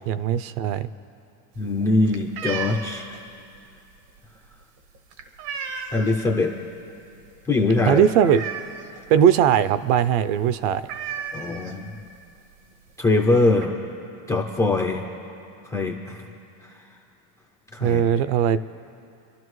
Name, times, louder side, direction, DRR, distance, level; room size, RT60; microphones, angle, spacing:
voice 1, 0.1-0.9 7.8-8.4 9.1-10.8 17.8-18.6, right 9 dB, 50° right, 14 dB, 0.5 m, -19 dB
sound 1, 1.5-6.3 6.6-7.0 7.3-7.4 7.7-9.1 9.4-9.6 9.8-10.0 10.3-10.4 10.8-12.1 12.9-13.0 13.2-13.7, right 6 dB, 85° right, 1.7 m, -34 dB
voice 2, 1.6-3.1 5.9-6.5 7.5-8.0 11.3-11.9 13.0-13.7 14.3-15.0 15.7-16.2 17.7-18.0, left 2 dB, 10° left, -2 dB, 0.3 m, -22 dB
28.0 x 12.0 x 3.1 m, 2.6 s
supercardioid pair, 155°, 47 cm